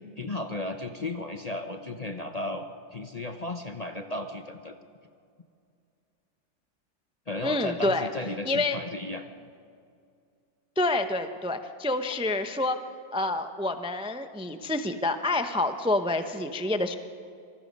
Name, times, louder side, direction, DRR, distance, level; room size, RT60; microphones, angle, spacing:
voice 1, 0.2-2.6 2.9-4.8 7.3-9.2, left 2 dB, 35° left, 6 dB, 0.7 m, -34 dB
voice 2, 7.4-8.1 8.4-8.8 10.8-12.8 13.1-16.9, left 2 dB, 5° right, 8 dB, 0.5 m, -28 dB
26.5 x 19.5 x 5.4 m, 2.4 s
omnidirectional pair, 1.6 m